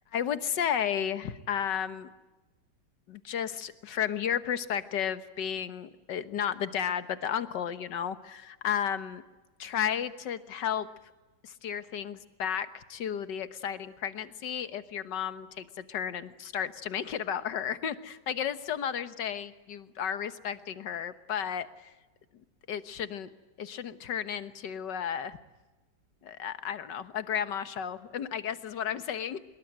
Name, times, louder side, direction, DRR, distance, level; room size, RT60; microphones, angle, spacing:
voice 1, 0.1-2.1 3.1-9.2 9.6-10.9 11.4-21.9 22.7-23.3 23.6-25.4 26.2-29.4, left 8 dB, 75° left, 12 dB, 1.9 m, -33 dB
25.5 x 22.0 x 9.1 m, 1.2 s
omnidirectional pair, 1.9 m